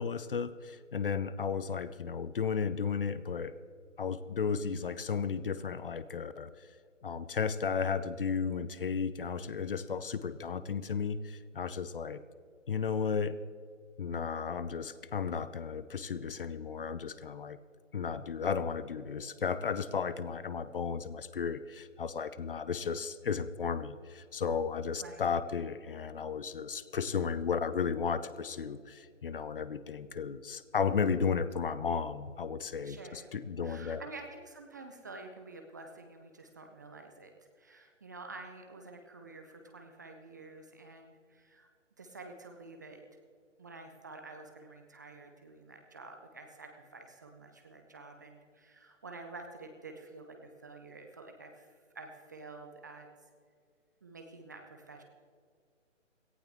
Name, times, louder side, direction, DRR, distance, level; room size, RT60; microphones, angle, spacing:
voice 1, 0.0-3.6 4.0-6.5 7.0-12.2 12.7-13.4 14.0-17.6 17.9-34.0, left 6 dB, 45° left, 14 dB, 0.7 m, -34 dB
voice 2, 32.8-33.3 33.6-41.7 42.0-43.0 43.6-53.1 54.0-55.0, right 3 dB, 15° right, 4 dB, 0.6 m, -49 dB
17.5 x 15.0 x 3.6 m, 2.1 s
figure-of-eight pair, 145°, 38 cm